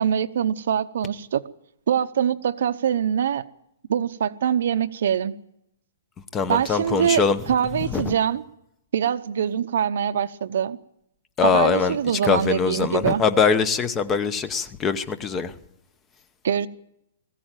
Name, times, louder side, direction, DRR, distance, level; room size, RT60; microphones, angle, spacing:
voice 1, 0.0-1.4 1.9-3.4 3.9-5.4 6.5-7.2 7.5-8.4 8.9-10.8 11.4-13.2 16.4-16.7, right 8 dB, 55° right, 0.8 m, -23 dB
voice 2, 6.3-7.4 7.8-8.1 11.4-12.0 12.2-15.5, left 5 dB, 15° left, 0.9 m, -22 dB
21.0 x 15.0 x 9.1 m
hypercardioid pair, 175°, 0 cm